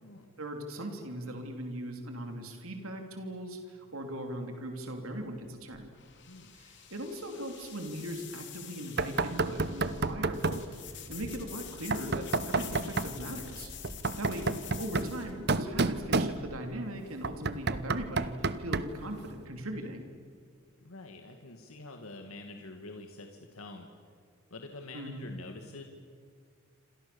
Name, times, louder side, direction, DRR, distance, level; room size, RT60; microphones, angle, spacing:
voice 1, 0.4-5.9 6.5-13.7 14.2-20.1 24.9-25.3, right 1 dB, 85° right, 4 dB, 3.3 m, -39 dB
sound 1, 5.0-15.3, left 7 dB, 55° left, 3.5 m, -46 dB
voice 2, 6.3-6.6 20.8-23.9 24.5-25.8, left 2 dB, 85° left, 4 dB, 2.1 m, -46 dB
Knock, 9.0-10.7 11.9-13.2 13.8-16.7 17.2-19.0, right 3 dB, 50° right, 0.9 m, -31 dB
28.0 x 27.0 x 7.0 m, 2.1 s
head